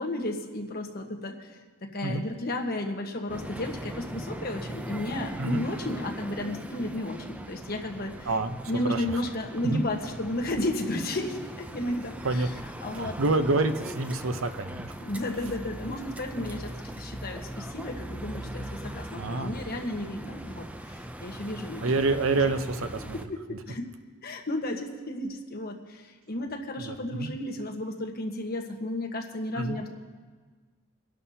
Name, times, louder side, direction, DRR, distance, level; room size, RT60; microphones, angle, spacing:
voice 1, 0.0-1.5 1.8-8.3 8.7-12.4 12.8-13.2 15.0-21.9 23.0-23.9 24.2-29.9, left 1 dB, 45° left, 3 dB, 1.2 m, -33 dB
sound 1, 3.3-23.3, right 1 dB, 5° right, 0.4 m, -40 dB
voice 2, 8.2-8.6 8.8-9.2 9.6-9.8 12.2-12.5 12.9-14.9 19.1-19.5 21.8-23.2 23.5-23.6 26.8-27.3 29.5-29.8, right 2 dB, 70° right, 9 dB, 0.7 m, -27 dB
24.0 x 11.5 x 2.8 m, 1.4 s
head